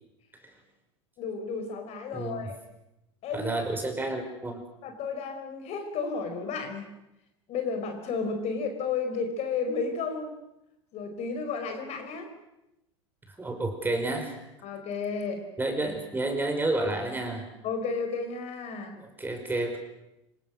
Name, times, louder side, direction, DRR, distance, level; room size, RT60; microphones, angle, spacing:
voice 1, 1.2-2.6 3.2-3.5 4.8-6.8 7.5-10.3 10.9-12.3 14.6-15.4 17.6-19.0, left 5 dB, 45° left, 6 dB, 5.2 m, -32 dB
voice 2, 2.1-2.5 3.3-4.6 13.4-14.4 15.6-17.5 19.0-19.8, right 2 dB, 10° right, 4 dB, 5.9 m, -30 dB
27.0 x 25.5 x 6.6 m, 0.90 s
figure-of-eight pair, 80°, 16 cm